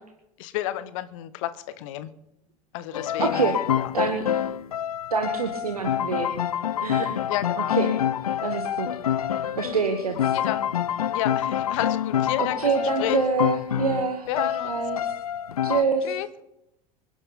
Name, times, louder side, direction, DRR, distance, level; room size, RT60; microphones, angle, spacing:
voice 1, 0.4-2.1 2.7-3.5 3.8-3.9 7.3-7.8 10.3-10.6 11.1-13.2 14.3-14.8 16.0-16.3, left 13 dB, 60° left, 14 dB, 1.1 m, -31 dB
sound 1, 2.9-15.8, left 10 dB, 75° left, 0.5 m, -27 dB
voice 2, 3.2-3.6 3.9-4.3 5.1-6.3 6.8-7.1 7.7-7.9 8.4-8.9 9.6-10.4 12.4-15.0 15.6-16.1, right 5 dB, 80° right, 6 dB, 1.4 m, -26 dB
25.5 x 11.0 x 4.1 m, 0.85 s
figure-of-eight pair, 75°, 19 cm